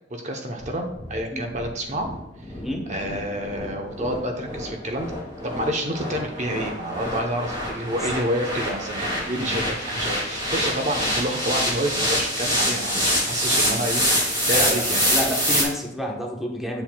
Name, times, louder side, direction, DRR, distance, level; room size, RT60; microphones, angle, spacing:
voice 1, 0.1-2.1 2.4-2.5 2.9-5.1 5.4-15.0, right 1 dB, 40° right, 3 dB, 0.8 m, -28 dB
sound 1, 0.6-15.6, equal, 25° right, 2.2 m, -26 dB
voice 2, 14.5-16.8, equal, ahead, 0 dB, 1.0 m, -30 dB
7.6 x 7.3 x 2.2 m, 0.88 s
head